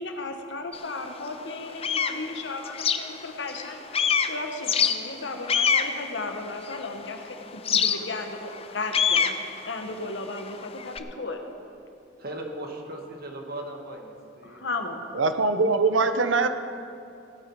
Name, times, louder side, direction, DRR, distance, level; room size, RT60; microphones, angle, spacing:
voice 1, 0.0-11.4 14.4-15.1, left 3 dB, 70° left, 5 dB, 1.2 m, -35 dB
sound 1, 0.7-0.8 1.4-3.7 3.9-7.1 7.6-11.0, left 7 dB, 30° left, 0.5 m, -26 dB
voice 2, 12.2-14.6, right 1 dB, 50° right, 2 dB, 1.7 m, -38 dB
voice 3, 15.1-16.5, right 3 dB, 80° right, 9 dB, 0.7 m, -22 dB
17.0 x 9.0 x 4.7 m, 2.6 s
head